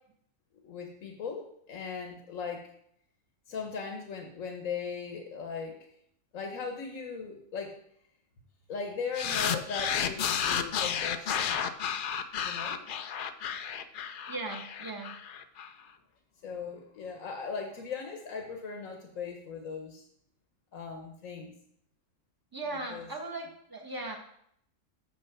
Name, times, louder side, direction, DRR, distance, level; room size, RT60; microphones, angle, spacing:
voice 1, 0.6-2.7 3.5-5.8 6.3-7.8 8.7-11.6 12.4-12.8 16.4-20.1 20.7-21.5 22.9-23.1, left 5 dB, 85° left, 4 dB, 1.5 m, -38 dB
sound 1, 9.1-15.7, left 8 dB, 60° left, 0.6 m, -32 dB
voice 2, 14.3-15.1 22.5-24.2, right 2 dB, 15° right, 1 dB, 1.4 m, -38 dB
6.7 x 6.3 x 6.0 m, 0.70 s
omnidirectional pair, 1.3 m